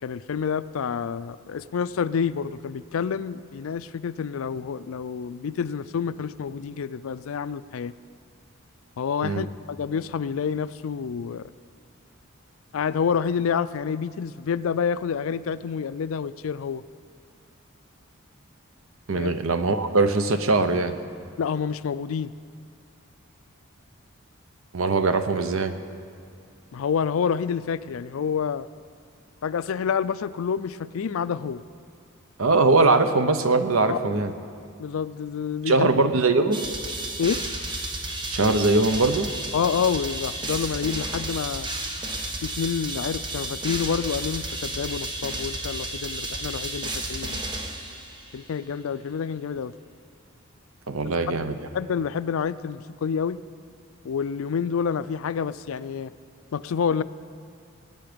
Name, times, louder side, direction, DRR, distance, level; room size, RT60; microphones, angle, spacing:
voice 1, 0.0-7.9 9.0-11.5 12.7-16.8 19.1-19.3 21.4-22.3 26.7-28.7 29.4-31.6 33.9-34.0 34.8-35.9 37.2-37.4 39.5-41.7 42.4-47.4 48.3-49.7 51.7-53.4 54.0-56.1 56.5-57.0, left 6 dB, 75° left, 15 dB, 0.4 m, -28 dB
voice 2, 19.1-21.0 24.7-25.7 32.4-34.3 35.7-36.6 38.3-39.3 50.9-51.6, right 3 dB, 80° right, 9 dB, 0.8 m, -21 dB
sound 1, 36.5-48.4, right 1 dB, 20° right, 1.1 m, -32 dB
20.0 x 9.3 x 5.1 m, 2.4 s
head